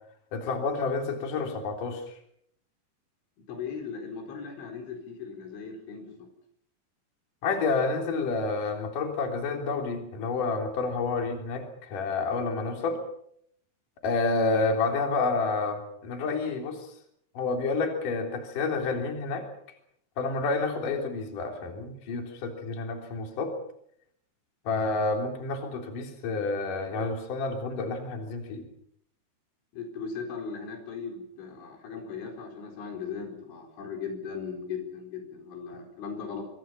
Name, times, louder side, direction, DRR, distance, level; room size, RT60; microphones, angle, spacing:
voice 1, 0.3-2.1 7.4-13.0 14.0-16.9 17.3-19.5 20.2-23.5 24.7-28.7, left 3 dB, 50° left, 4 dB, 4.8 m, -29 dB
voice 2, 3.5-6.3 29.7-36.4, left 6 dB, 90° left, 4 dB, 6.8 m, -38 dB
27.0 x 24.0 x 5.8 m, 0.69 s
omnidirectional pair, 5.3 m